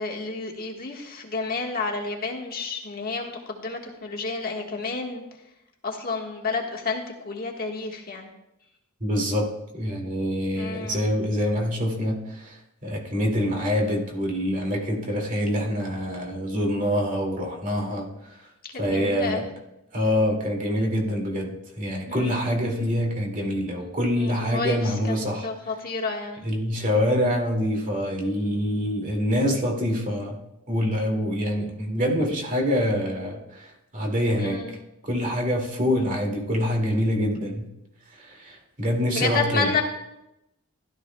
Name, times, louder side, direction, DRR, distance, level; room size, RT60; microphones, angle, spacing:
voice 1, 0.0-5.2 5.8-8.3 10.6-11.0 18.8-19.5 22.1-22.5 24.1-25.1 25.4-26.4 34.4-34.8 39.1-39.8, left 4 dB, 45° left, 0 dB, 1.5 m, -30 dB
voice 2, 9.0-9.5 9.7-12.5 12.8-18.1 18.8-19.4 19.9-25.5 26.4-30.4 30.7-33.7 33.9-34.6 35.0-37.7 38.2-39.7, equal, 35° right, 0 dB, 2.3 m, -25 dB
16.0 x 12.5 x 2.2 m, 0.88 s
head